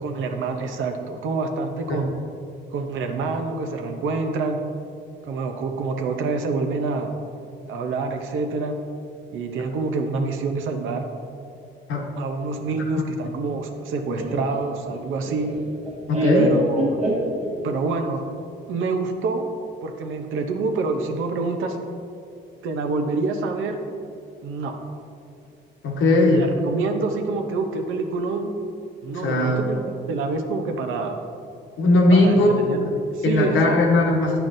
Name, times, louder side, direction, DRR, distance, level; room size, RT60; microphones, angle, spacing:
voice 1, 0.0-2.1 2.7-4.6 5.2-7.1 7.6-8.8 9.3-11.1 12.2-15.5 16.4-17.0 17.6-18.2 18.7-19.5 19.8-21.8 22.6-23.8 24.4-24.7 26.0-28.5 29.0-31.2 32.1-33.8, right 3 dB, 80° right, 5 dB, 0.7 m, -27 dB
Laughter, 14.2-17.8, right 1 dB, 35° right, 1.1 m, -25 dB
voice 2, 16.1-16.5 25.8-26.4 29.1-29.6 31.8-32.5 33.2-34.4, left 2 dB, 80° left, 1 dB, 1.1 m, -18 dB
9.1 x 5.7 x 2.6 m, 2.5 s
cardioid pair, 90°, 20 cm